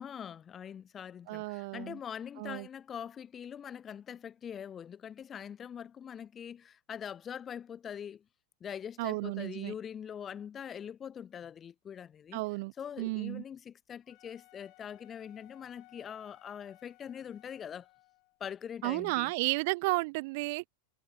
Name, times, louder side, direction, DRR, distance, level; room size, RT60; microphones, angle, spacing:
voice 1, 0.0-8.2 8.6-12.4 12.8-17.9 18.4-19.3, left 8 dB, 25° left, 0.3 m, -43 dB
voice 2, 1.3-2.0 2.4-2.7 9.0-9.7 12.3-12.7 13.0-13.4 18.8-20.6, right 25 dB, 50° right, 0.6 m, -33 dB
Wind instrument woodwind instrument, 14.1-18.4, left 30 dB, 45° left, 4.9 m, -61 dB
figure-of-eight pair, 90°, 0 cm